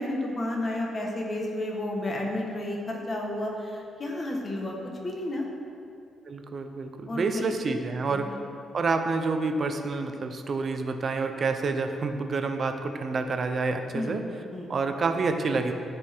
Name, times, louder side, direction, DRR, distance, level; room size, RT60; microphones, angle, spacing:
voice 1, 0.0-4.7 5.0-5.5 7.1-7.5 8.1-8.3 13.9-14.2 14.5-14.7, left 1 dB, 30° left, -1 dB, 1.5 m, -31 dB
voice 2, 6.3-8.4 8.7-14.2 14.7-15.7, right 4 dB, 40° right, 6 dB, 0.7 m, -28 dB
13.5 x 5.2 x 4.5 m, 2.6 s
cardioid pair, 145°, 0 cm